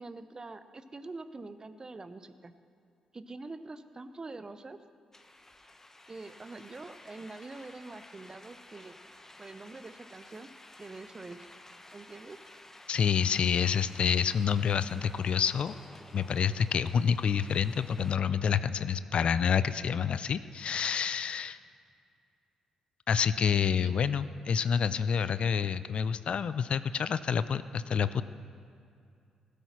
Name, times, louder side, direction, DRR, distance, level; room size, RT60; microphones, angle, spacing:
voice 1, 0.0-2.5 3.1-4.8 6.1-9.0 9.4-10.5 10.8-11.4 11.9-12.4 23.8-23.9, right 3 dB, 30° right, 11 dB, 0.8 m, -45 dB
sound 1, 5.1-18.2, left 1 dB, 20° left, 1.1 m, -53 dB
voice 2, 12.9-15.7 16.1-21.6 23.1-28.2, left 7 dB, 55° left, 14 dB, 0.4 m, -28 dB
16.5 x 8.4 x 6.0 m, 2.4 s
hypercardioid pair, 40°, 2 cm